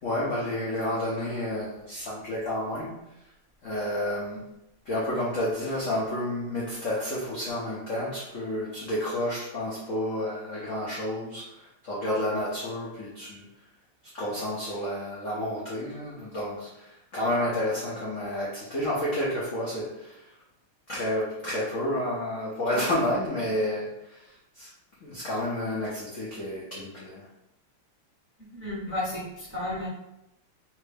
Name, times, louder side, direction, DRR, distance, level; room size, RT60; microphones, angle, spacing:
voice 1, 0.0-2.9 3.6-4.4 4.8-13.4 14.1-20.3 20.9-24.7 25.0-27.3, left 1 dB, 75° left, -6 dB, 0.7 m, -30 dB
voice 2, 28.5-29.9, left 1 dB, 15° right, -8 dB, 0.4 m, -32 dB
3.2 x 2.6 x 3.3 m, 0.87 s
omnidirectional pair, 2.4 m